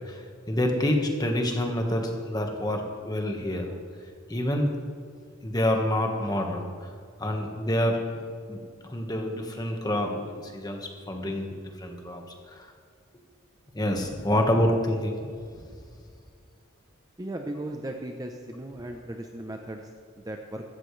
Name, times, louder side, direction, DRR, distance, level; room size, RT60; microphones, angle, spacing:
voice 1, 0.0-3.7 4.3-4.7 5.4-6.9 7.2-8.2 8.5-11.5 11.8-12.7 13.7-15.3, left 1 dB, 20° left, 2 dB, 1.4 m, -27 dB
voice 2, 17.2-19.9 20.2-20.6, right 1 dB, 15° right, 3 dB, 0.7 m, -36 dB
15.5 x 13.0 x 3.2 m, 2.1 s
head